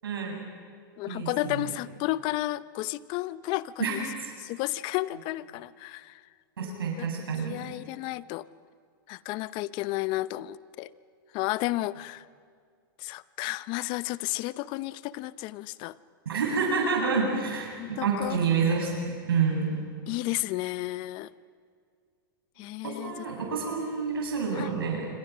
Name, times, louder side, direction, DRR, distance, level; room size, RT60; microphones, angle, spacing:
voice 1, 0.0-0.4 1.1-1.7 3.8-4.3 6.6-7.6 16.2-19.8 23.0-25.1, right 5 dB, 90° right, 0 dB, 8.0 m, -28 dB
voice 2, 1.0-4.0 4.4-6.2 6.6-7.1 7.5-8.5 9.1-10.9 11.3-12.2 13.0-15.9 17.8-18.4 20.1-21.3 22.6-23.1 24.5-24.7, left 17 dB, 40° left, 18 dB, 0.7 m, -32 dB
27.0 x 25.5 x 6.2 m, 2.1 s
hypercardioid pair, 130°, 12 cm